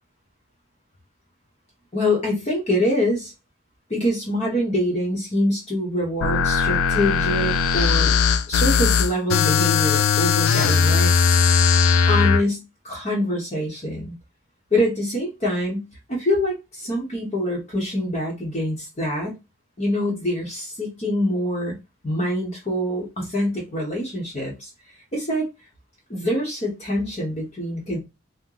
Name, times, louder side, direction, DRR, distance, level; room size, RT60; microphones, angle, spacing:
voice 1, 1.9-3.3 3.9-8.2 8.5-11.1 12.1-14.1 14.7-19.4 19.8-21.8 22.0-24.7 25.1-25.5 26.1-28.0, left 1 dB, 30° left, -3 dB, 0.8 m, -25 dB
sound 1, 6.2-12.4, left 6 dB, 85° left, 0.4 m, -19 dB
2.9 x 2.1 x 3.7 m, 0.24 s
head